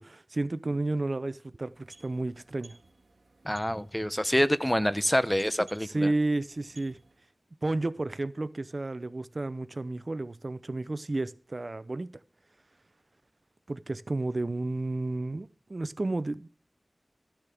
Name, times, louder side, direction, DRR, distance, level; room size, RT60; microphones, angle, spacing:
voice 1, 0.0-2.7 5.9-7.0 7.6-12.1 13.7-16.5, right 2 dB, 50° right, 0.6 m, -32 dB
sound 1, 1.6-7.4, right 3 dB, 70° right, 1.9 m, -57 dB
voice 2, 3.4-6.1, equal, 10° left, 0.7 m, -26 dB
13.5 x 10.5 x 3.5 m
wide cardioid pair, 55°, 0 cm